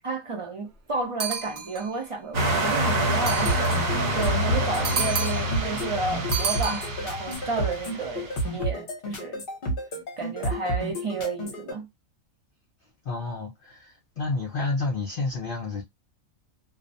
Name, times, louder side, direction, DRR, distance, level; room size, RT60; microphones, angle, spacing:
voice 1, 0.0-9.4 10.2-11.9, right 3 dB, 35° right, 0.5 m, -32 dB
sound 1, 1.2-2.0 3.1-3.9 4.8-5.6 6.3-7.3, right 5 dB, 55° right, 0.9 m, -31 dB
sound 2, 2.3-8.5, right 1 dB, 75° right, 1.3 m, -27 dB
sound 3, 3.4-11.7, right 1 dB, 50° left, 0.8 m, -31 dB
voice 2, 4.6-5.0 13.0-15.8, left 3 dB, 70° left, 0.5 m, -30 dB
2.5 x 2.0 x 2.5 m
omnidirectional pair, 1.4 m